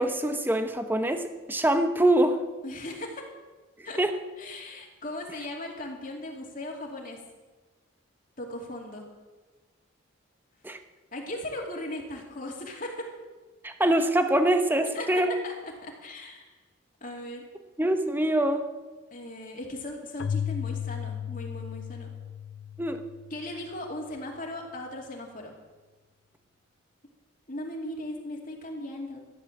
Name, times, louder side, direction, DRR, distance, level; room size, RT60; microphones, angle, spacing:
voice 1, 0.0-2.4 4.0-4.1 10.6-10.8 13.6-15.3 17.8-18.6 22.8-23.0, right 1 dB, 10° right, 7 dB, 0.9 m, -24 dB
voice 2, 2.6-3.3 3.8-4.0 4.4-7.2 8.4-9.1 11.1-13.1 14.8-15.1 15.4-15.5 15.8-16.6 17.0-17.4 19.1-22.1 23.3-25.5 27.5-29.2, left 1 dB, 40° left, 0 dB, 2.6 m, -38 dB
Keyboard (musical), 20.2-23.7, left 8 dB, 65° left, 0.4 m, -35 dB
14.5 x 10.5 x 7.3 m, 1.3 s
head